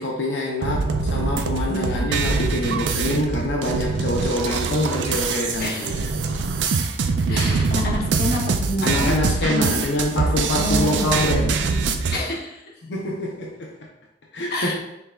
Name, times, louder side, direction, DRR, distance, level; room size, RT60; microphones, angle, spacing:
voice 1, 0.0-6.0 7.3-7.7 8.8-11.6 12.8-13.7 14.3-14.8, left 1 dB, 85° left, -1 dB, 0.6 m, -25 dB
sound 1, 0.6-12.2, right 4 dB, 90° right, 0.4 m, -23 dB
voice 2, 1.7-2.1 2.6-2.7 5.6-6.1 7.3-9.1 9.5-9.8 10.6-11.1 12.1-12.6 14.5-14.7, left 1 dB, 55° left, -3 dB, 0.9 m, -28 dB
5.7 x 3.3 x 2.3 m, 0.89 s
head